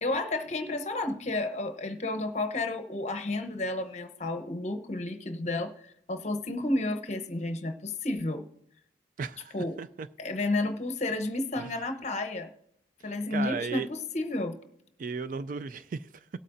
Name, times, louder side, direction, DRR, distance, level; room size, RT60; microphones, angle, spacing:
voice 1, 0.0-8.4 9.5-9.8 10.2-12.5 13.0-14.6, left 2 dB, 35° left, 0.9 m, -31 dB
voice 2, 9.2-10.1 11.6-11.7 13.3-13.9 15.0-16.1, right 5 dB, 45° right, 0.3 m, -35 dB
18.5 x 8.2 x 2.6 m
head